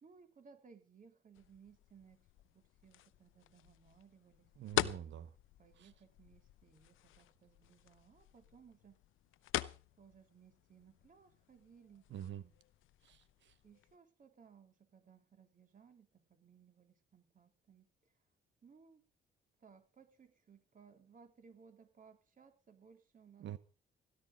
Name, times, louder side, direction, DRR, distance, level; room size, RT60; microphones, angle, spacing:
voice 1, 0.0-2.2 2.5-4.5 5.6-9.0 10.0-12.5 13.6-18.1 18.6-19.0 19.6-23.5, right 6 dB, 40° right, 3.6 m, -63 dB
sound 1, 1.3-14.0, left 14 dB, 85° left, 0.8 m, -45 dB
voice 2, 4.6-5.3 5.8-5.9 12.1-12.4 13.0-13.5 23.4-23.6, right 11 dB, 65° right, 0.9 m, -46 dB
17.0 x 11.5 x 5.2 m
cardioid pair, 90°, 20 cm